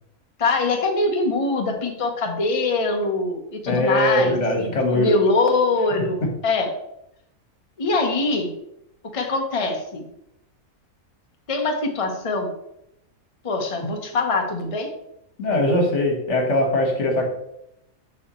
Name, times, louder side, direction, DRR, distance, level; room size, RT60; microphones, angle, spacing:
voice 1, 0.4-6.7 7.8-8.5 9.1-10.0 11.5-12.5 13.4-14.9, left 3 dB, 25° left, 3 dB, 0.9 m, -23 dB
voice 2, 3.7-5.1 15.4-17.3, left 1 dB, 55° left, 2 dB, 1.8 m, -21 dB
11.0 x 4.3 x 3.1 m, 0.80 s
omnidirectional pair, 1.5 m